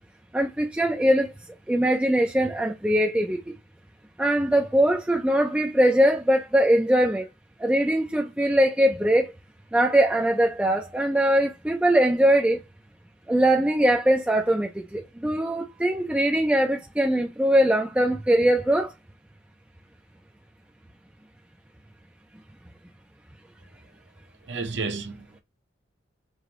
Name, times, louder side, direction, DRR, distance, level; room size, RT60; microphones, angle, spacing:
voice 1, 0.3-1.3 1.7-3.5 4.2-7.3 7.6-9.3 9.7-12.6 13.3-18.9, right 1 dB, 5° right, 0.4 m, -21 dB
voice 2, 24.5-25.4, right 4 dB, 60° right, 0.7 m, -31 dB
4.8 x 2.9 x 2.6 m
head